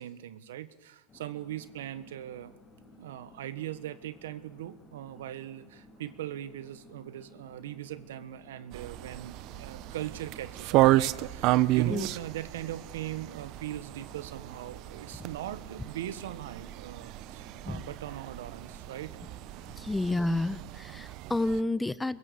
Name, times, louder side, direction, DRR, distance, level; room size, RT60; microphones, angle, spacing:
voice 1, 0.0-2.6 3.0-19.1, right 12 dB, 90° right, 14 dB, 1.4 m, -40 dB
sound 1, 1.1-20.5, left 2 dB, 25° left, 4.8 m, -56 dB
sound 2, 8.7-21.6, right 17 dB, 55° right, 0.8 m, -32 dB
voice 2, 19.8-22.2, left 2 dB, 10° left, 16 dB, 0.9 m, -30 dB
25.0 x 22.5 x 7.0 m, 1.0 s
supercardioid pair, 120°, 0 cm